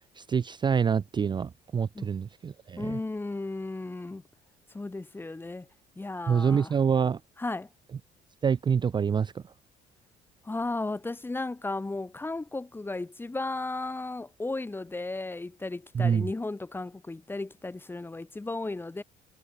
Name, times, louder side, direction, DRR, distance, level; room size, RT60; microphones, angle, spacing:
voice 1, 0.2-3.0 6.3-7.2 8.4-9.4 15.9-16.3, right 6 dB, 25° right, 0.5 m, -26 dB
voice 2, 2.8-4.2 4.7-5.7 6.0-6.7 7.4-7.7 10.4-19.0, left 2 dB, 10° left, 1.0 m, -35 dB
cardioid pair, 110°, 17 cm